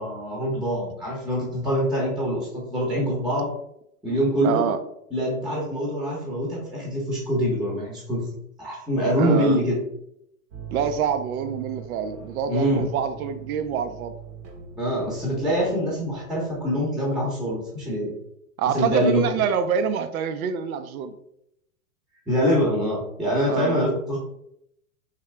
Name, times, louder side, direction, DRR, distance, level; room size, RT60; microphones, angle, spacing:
voice 1, 0.0-3.5 4.0-4.7 5.1-8.2 8.6-9.7 12.5-12.9 14.8-18.1 18.6-19.2 22.3-24.2, equal, ahead, -4 dB, 0.7 m, -24 dB
voice 2, 4.4-4.8 9.2-9.6 10.7-14.1 18.6-21.2 23.5-23.8, right 7 dB, 70° right, 10 dB, 0.6 m, -26 dB
sound 1, 10.5-16.8, right 6 dB, 40° right, 0.8 m, -42 dB
3.6 x 2.7 x 3.3 m, 0.76 s
hypercardioid pair, 120°, 44 cm